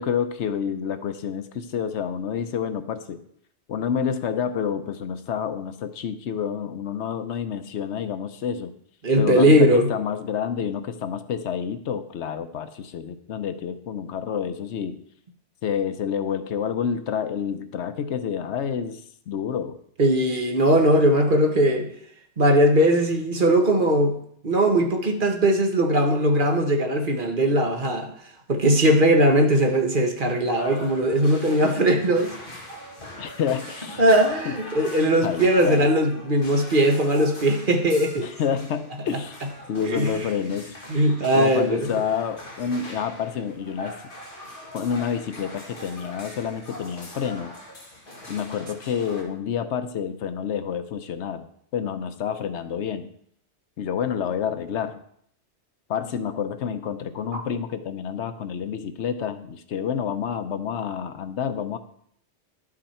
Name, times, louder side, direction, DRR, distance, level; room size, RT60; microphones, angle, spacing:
voice 1, 0.0-3.2 3.7-8.7 9.2-15.0 15.6-19.8 33.2-34.0 34.5-34.6 35.2-35.9 38.2-40.8 41.3-44.0 44.7-47.5 48.3-51.5 51.7-53.1 53.8-55.0 55.9-61.8, left 7 dB, 75° left, 11 dB, 1.0 m, -29 dB
voice 2, 9.0-9.9 20.0-21.9 22.4-24.1 24.4-28.1 28.5-32.3 34.0-38.3 39.9-40.1 40.9-41.9 57.3-57.4, right 1 dB, 45° right, 4 dB, 1.4 m, -19 dB
sound 1, 30.5-49.2, left 1 dB, 50° left, 2.2 m, -42 dB
11.5 x 6.3 x 4.3 m, 0.67 s
omnidirectional pair, 1.2 m